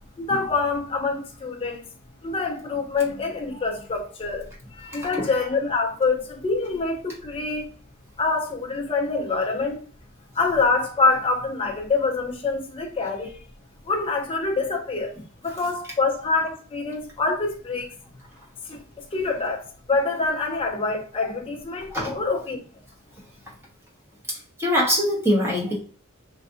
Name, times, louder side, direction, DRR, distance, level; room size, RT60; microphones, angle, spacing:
voice 1, 0.2-1.9 2.2-7.7 8.2-9.8 10.3-13.4 13.8-15.1 15.4-17.9 18.6-22.6, left 3 dB, 25° left, 0.4 m, -26 dB
voice 2, 4.9-5.3 21.9-22.2 24.6-25.8, equal, 10° right, 1.0 m, -23 dB
3.3 x 2.6 x 2.4 m
head